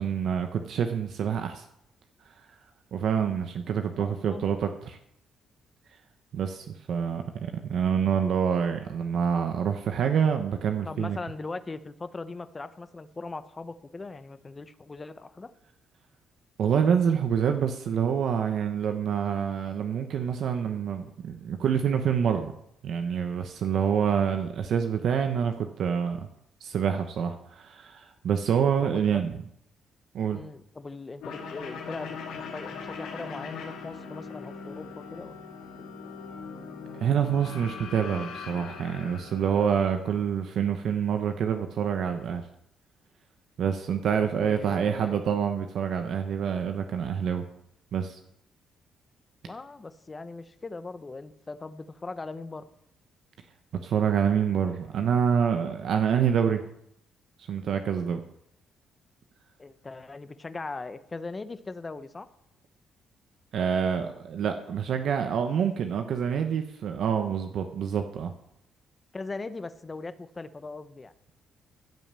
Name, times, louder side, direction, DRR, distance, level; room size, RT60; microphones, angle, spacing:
voice 1, 0.0-1.6 2.9-5.0 6.3-11.2 16.6-22.5 22.8-26.2 26.6-29.3 30.1-30.4 37.0-42.4 43.6-47.4 47.9-48.2 53.8-56.6 57.5-58.2 63.5-68.3, right 7 dB, 70° right, 6 dB, 1.0 m, -27 dB
voice 2, 4.0-4.5 10.8-15.5 28.8-29.3 30.3-35.3 35.8-35.9 44.2-45.2 49.4-52.6 59.6-62.3 69.1-71.1, left 3 dB, 25° left, 12 dB, 0.9 m, -39 dB
sound 1, 31.2-40.2, left 5 dB, 85° left, 2.8 m, -40 dB
15.0 x 5.5 x 7.5 m, 0.75 s
cardioid pair, 90°, 0 cm